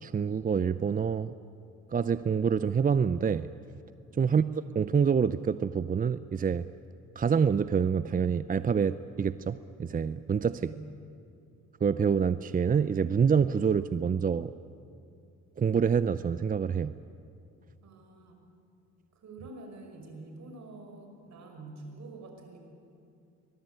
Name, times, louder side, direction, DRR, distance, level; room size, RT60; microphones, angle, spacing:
voice 1, 0.0-1.3 1.9-3.5 4.2-4.4 4.8-6.6 7.2-10.6 11.8-14.5 15.6-16.9, right 6 dB, 30° right, 14 dB, 0.6 m, -26 dB
voice 2, 4.2-4.5 10.5-10.9 17.8-18.4 19.1-22.6, right 3 dB, 65° right, 3 dB, 5.7 m, -47 dB
24.0 x 20.5 x 9.2 m, 2.6 s
cardioid pair, 90°, 30 cm